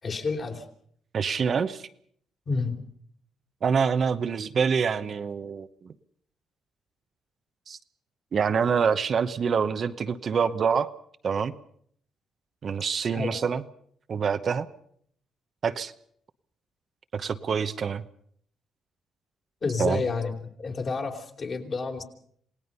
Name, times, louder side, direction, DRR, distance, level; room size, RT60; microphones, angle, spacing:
voice 1, 0.0-0.7 2.5-2.8 13.1-13.4 19.6-22.0, left 4 dB, 45° left, 2 dB, 3.6 m, -30 dB
voice 2, 1.1-1.9 3.6-5.9 7.7-7.8 8.3-10.9 11.2-11.5 12.6-13.6 14.1-14.7 15.6-15.9 17.1-18.0 19.8-20.0, right 6 dB, 50° right, 10 dB, 0.9 m, -26 dB
27.5 x 18.0 x 5.6 m, 0.64 s
cardioid pair, 90°, 0 cm